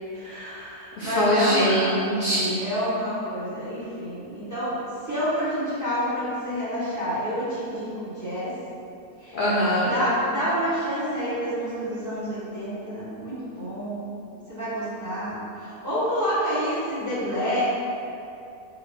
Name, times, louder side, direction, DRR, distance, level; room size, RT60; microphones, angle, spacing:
voice 1, 0.1-2.0 2.6-4.7 5.0-8.5 9.2-9.4 9.9-14.1 14.5-17.6, equal, 10° right, -13 dB, 1.4 m, -28 dB
voice 2, 1.0-2.6 9.3-9.9, equal, 50° left, -8 dB, 0.6 m, -23 dB
4.1 x 2.5 x 4.7 m, 2.7 s
omnidirectional pair, 1.5 m